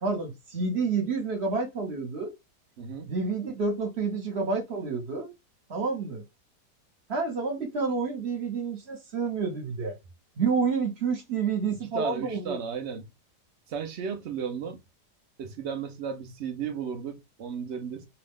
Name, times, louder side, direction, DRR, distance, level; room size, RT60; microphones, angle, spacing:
voice 1, 0.0-2.3 3.1-5.3 5.7-6.2 7.1-10.0 10.4-12.6, right 4 dB, 45° right, 1.1 m, -29 dB
voice 2, 2.8-3.1 11.7-13.1 13.7-14.8 15.4-18.1, right 6 dB, 65° right, 0.7 m, -34 dB
2.8 x 2.4 x 3.5 m
omnidirectional pair, 1.9 m